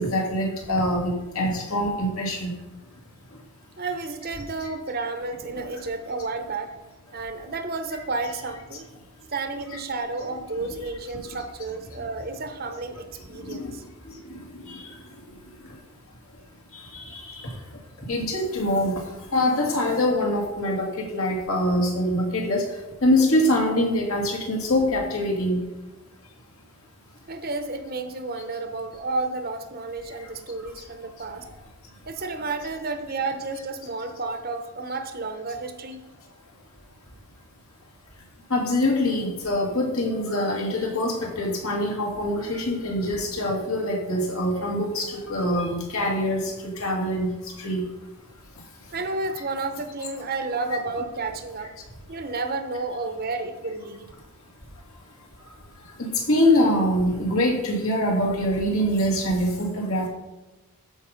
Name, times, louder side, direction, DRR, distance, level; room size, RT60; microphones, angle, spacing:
voice 1, 0.0-2.5 9.7-9.8 13.5-13.6 16.7-17.5 18.1-18.9 19.3-22.6 23.0-25.6 38.5-46.5 46.8-47.3 47.6-47.8 56.0-60.1, left 1 dB, 70° left, 0 dB, 2.4 m, -24 dB
voice 2, 3.8-6.7 7.1-8.8 9.3-13.8 27.3-31.5 32.1-36.0 48.9-51.7 52.1-54.1, right 3 dB, 40° right, 7 dB, 0.9 m, -31 dB
13.0 x 5.3 x 5.1 m, 1.1 s
head